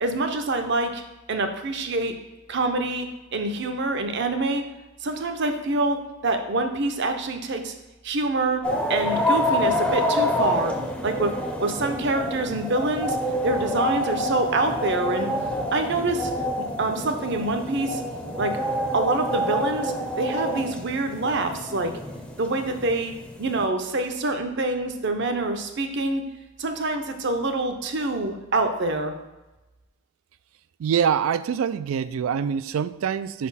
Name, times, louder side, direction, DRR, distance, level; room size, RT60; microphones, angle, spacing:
voice 1, 0.0-1.0 1.3-2.1 2.5-4.6 5.0-7.7 8.0-8.6 8.9-10.8 11.0-11.3 11.6-13.2 13.4-15.3 15.7-16.3 16.8-18.0 18.4-18.6 18.9-22.0 22.4-23.1 23.4-26.2 26.6-29.1, right 2 dB, 55° right, 6 dB, 0.7 m, -26 dB
sound 1, 8.6-23.7, left 1 dB, 5° left, 0.6 m, -27 dB
voice 2, 30.8-33.5, right 7 dB, 75° right, 14 dB, 0.3 m, -25 dB
5.0 x 4.2 x 5.5 m, 1.1 s
head